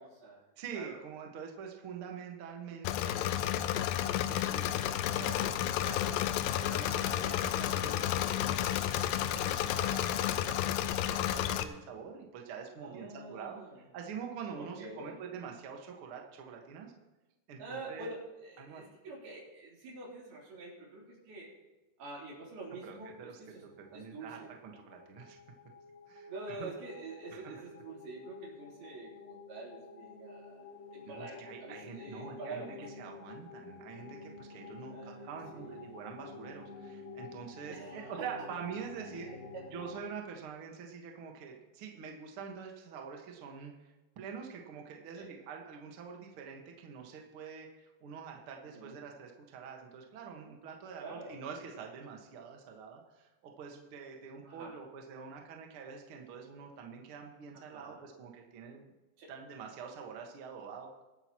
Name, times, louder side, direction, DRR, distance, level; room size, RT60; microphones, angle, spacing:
voice 1, 0.0-0.4 0.7-1.0 5.4-5.5 12.8-13.8 14.6-15.2 17.6-21.5 22.0-24.5 26.3-30.7 30.9-33.0 34.9-35.9 37.7-38.3 39.1-39.7 45.1-45.3 48.6-49.0 51.0-51.4 54.5-54.8 57.5-58.0 59.2-59.3, right 3 dB, 90° right, -5 dB, 5.4 m, -46 dB
voice 2, 0.6-10.7 10.9-16.9 17.5-18.1 18.6-18.8 22.8-23.4 23.8-25.4 26.1-26.7 27.3-27.6 31.1-39.3 39.7-43.7 44.1-58.9 59.3-61.0, right 6 dB, 55° right, 1 dB, 1.6 m, -46 dB
Engine / Mechanisms, 2.8-11.6, left 12 dB, 80° left, 2.2 m, -31 dB
sound 1, 23.6-40.0, left 4 dB, 60° left, 2.4 m, -50 dB
23.0 x 9.0 x 3.0 m, 1.1 s
omnidirectional pair, 4.3 m